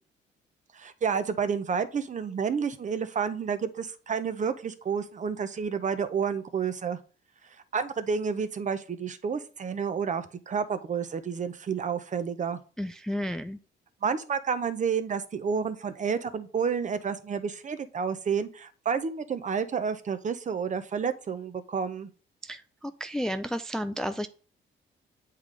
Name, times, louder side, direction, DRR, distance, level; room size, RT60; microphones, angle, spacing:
voice 1, 0.7-7.0 7.7-12.6 14.0-22.1, right 6 dB, 40° right, 12 dB, 0.7 m, -30 dB
voice 2, 12.8-13.6 22.4-24.3, equal, 5° left, 10 dB, 0.3 m, -32 dB
7.9 x 3.8 x 3.2 m, 0.39 s
cardioid pair, 90°, 20 cm